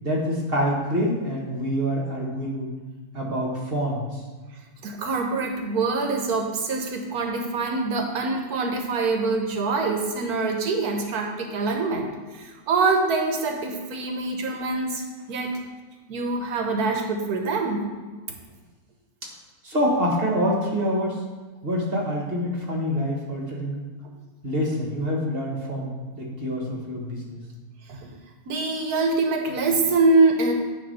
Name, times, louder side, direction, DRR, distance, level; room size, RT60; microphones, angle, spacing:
voice 1, 0.0-2.7 3.1-4.2 19.6-21.2 21.6-23.8 24.4-27.4, equal, 40° right, -2 dB, 1.6 m, -26 dB
voice 2, 4.8-15.5 16.1-17.9 27.9-28.1 28.5-30.5, right 3 dB, 80° right, 3 dB, 1.4 m, -24 dB
9.4 x 3.2 x 5.4 m, 1.3 s
omnidirectional pair, 1.6 m